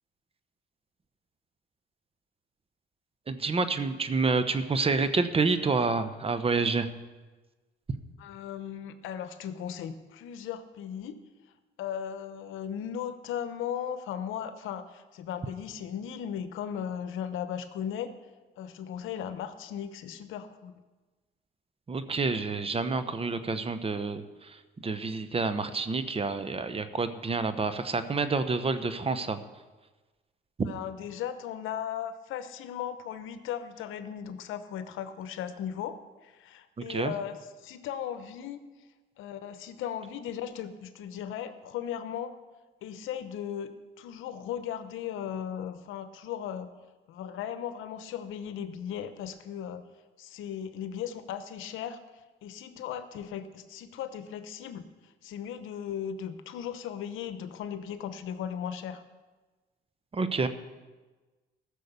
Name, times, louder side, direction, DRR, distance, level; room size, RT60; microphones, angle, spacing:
voice 1, 3.3-6.9 21.9-29.4 30.6-30.7 36.8-37.1 60.1-60.5, right 4 dB, 30° right, 11 dB, 0.9 m, -28 dB
voice 2, 8.2-11.2 11.8-18.1 18.6-20.7 30.7-38.6 39.2-42.3 42.8-43.7 44.0-46.7 47.1-49.8 50.2-52.0 52.4-59.0, left 9 dB, 85° left, 10 dB, 0.9 m, -37 dB
14.5 x 6.5 x 6.8 m, 1.2 s
cardioid pair, 90°, 20 cm